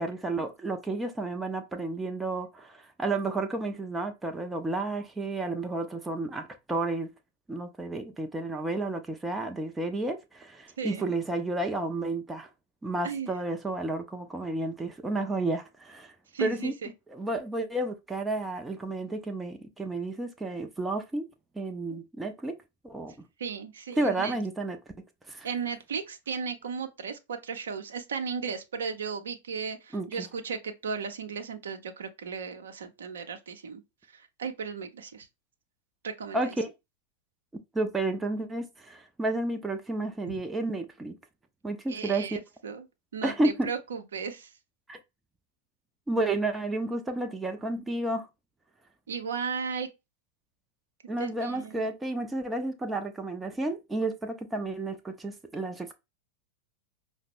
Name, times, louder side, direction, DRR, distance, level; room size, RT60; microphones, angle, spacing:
voice 1, 0.0-7.1 7.5-12.5 12.8-16.1 16.4-16.7 17.1-21.3 21.5-22.6 22.8-23.1 24.0-24.8 25.3-25.5 29.9-30.1 36.3-36.7 37.7-41.1 41.6-42.4 43.2-43.7 44.9-45.0 46.1-48.3 51.1-55.9, right 2 dB, 10° right, 0.6 m, -31 dB
voice 2, 16.3-16.9 23.4-24.3 25.4-33.8 34.1-35.3 36.0-36.5 41.9-42.8 43.1-44.5 49.1-49.9 51.2-51.9, right 6 dB, 65° right, 0.7 m, -35 dB
5.6 x 2.1 x 3.5 m
figure-of-eight pair, 90°, 0 cm